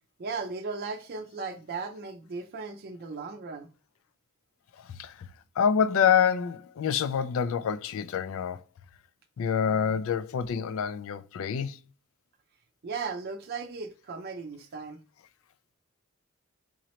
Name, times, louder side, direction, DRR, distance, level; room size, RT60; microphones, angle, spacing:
voice 1, 0.2-3.7 12.8-15.0, right 4 dB, 45° right, 0.5 m, -36 dB
voice 2, 4.8-5.3 5.6-8.6 9.4-11.8, left 7 dB, 65° left, 0.4 m, -27 dB
3.8 x 3.1 x 2.9 m
head